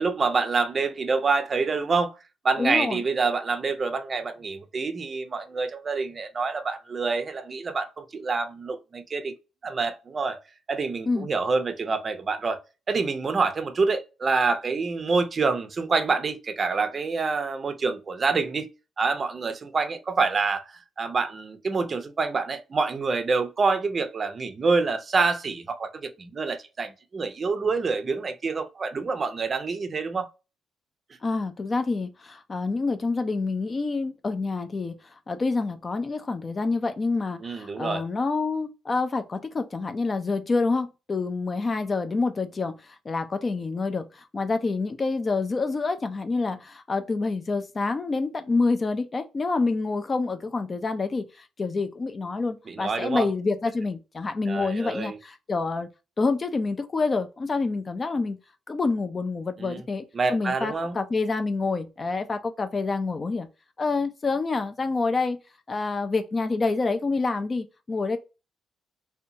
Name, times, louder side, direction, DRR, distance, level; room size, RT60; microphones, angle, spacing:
voice 1, 0.0-2.1 2.4-9.3 9.6-10.4 10.7-12.6 12.9-18.7 19.0-20.6 21.0-30.3 37.4-38.0 52.7-53.3 54.5-55.2 59.6-59.8 60.1-61.0, right 4 dB, 40° right, 0.5 m, -26 dB
voice 2, 2.6-3.0 11.1-11.3 31.2-35.0 35.3-55.9 56.2-58.4 58.7-63.5 63.8-65.4 65.7-68.2, left 3 dB, 35° left, 0.3 m, -27 dB
2.6 x 2.2 x 2.6 m
cardioid pair, 90°, 0 cm